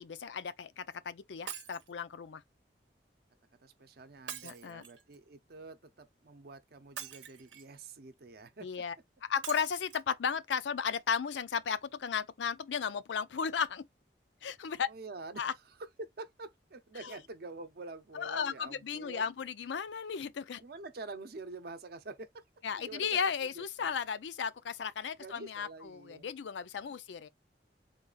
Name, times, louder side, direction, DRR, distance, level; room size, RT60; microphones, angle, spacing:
voice 1, 0.0-2.4 4.4-4.8 8.6-8.9 9.2-13.9 14.4-14.9 15.4-15.5 17.0-17.2 18.1-20.6 22.6-27.3, left 7 dB, 85° left, 0.4 m, -35 dB
Shatter, 1.5-1.9 4.3-5.2 7.0-7.7 9.4-10.0 10.7-10.8 11.0-11.1, right 9 dB, 90° right, 0.8 m, -44 dB
voice 2, 3.6-8.7 14.9-15.4 16.0-19.3 20.6-22.4 22.7-23.9 25.2-26.3, right 3 dB, 60° right, 0.6 m, -47 dB
3.8 x 2.4 x 3.8 m
head